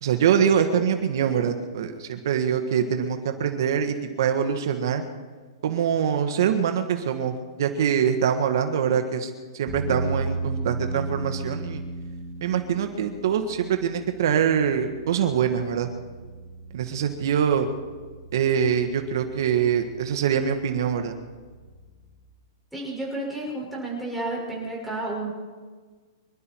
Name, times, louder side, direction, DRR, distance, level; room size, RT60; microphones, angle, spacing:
voice 1, 0.0-5.0 5.6-7.3 7.6-11.8 12.4-15.9 16.7-17.7 18.3-21.1, right 8 dB, 60° right, 6 dB, 1.5 m, -24 dB
sound 1, 9.7-22.2, right 2 dB, 25° left, 4.0 m, -36 dB
voice 2, 22.7-25.3, right 2 dB, ahead, -5 dB, 5.9 m, -31 dB
25.0 x 12.0 x 4.6 m, 1.5 s
hypercardioid pair, 160°, 2 cm